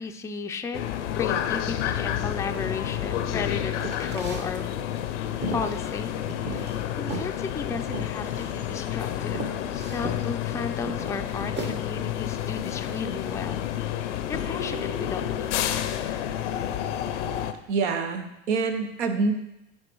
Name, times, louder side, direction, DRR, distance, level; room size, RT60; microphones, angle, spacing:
voice 1, 0.0-4.7 5.5-9.4 9.7-15.8, left 4 dB, 10° left, 6 dB, 0.3 m, -35 dB
sound 1, 0.7-17.5, left 11 dB, 75° left, 0.5 m, -30 dB
sound 2, 3.8-4.5 4.9-6.8 7.1-7.3 7.9-8.5 8.9-9.0 9.3-10.2 10.9-11.7, right 3 dB, 30° right, 1.0 m, -36 dB
voice 2, 17.7-19.3, right 4 dB, 75° right, 8 dB, 0.8 m, -26 dB
8.7 x 4.6 x 3.0 m, 0.88 s
hypercardioid pair, 75°, 36 cm